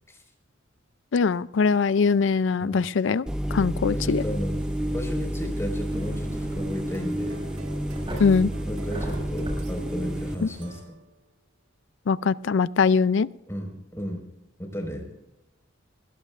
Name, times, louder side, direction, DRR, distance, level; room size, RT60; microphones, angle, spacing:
voice 1, 1.1-4.2 8.2-8.5 10.4-10.5 12.1-13.3, left 5 dB, 65° left, 18 dB, 0.4 m, -22 dB
sound 1, 3.3-10.3, equal, 5° right, 0.5 m, -30 dB
voice 2, 3.9-4.6 4.9-7.5 8.6-11.0 13.5-14.3 14.6-15.1, equal, 15° left, 2 dB, 4.8 m, -34 dB
sound 2, 4.1-10.8, equal, 25° right, 6.4 m, -41 dB
sound 3, 5.9-11.3, right 2 dB, 90° right, 1.7 m, -47 dB
21.0 x 17.5 x 2.5 m, 0.91 s
head